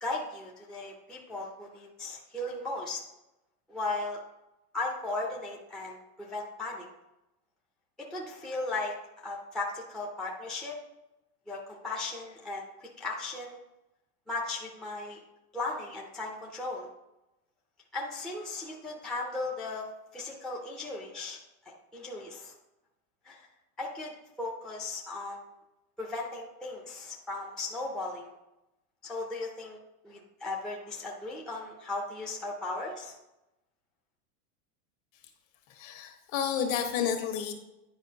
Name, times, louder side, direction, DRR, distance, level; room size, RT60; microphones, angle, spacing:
voice 1, 0.0-3.0 3.7-4.2 4.7-6.9 8.1-10.8 11.5-13.6 14.3-15.2 15.5-16.9 17.9-21.4 21.7-22.5 23.2-23.5 23.8-24.1 24.4-25.4 26.0-28.3 29.0-29.8 30.0-33.2, left 2 dB, ahead, -3 dB, 0.4 m, -36 dB
voice 2, 35.8-37.5, left 8 dB, 60° left, 5 dB, 1.4 m, -30 dB
10.0 x 4.7 x 2.7 m, 0.93 s
supercardioid pair, 140°, 46 cm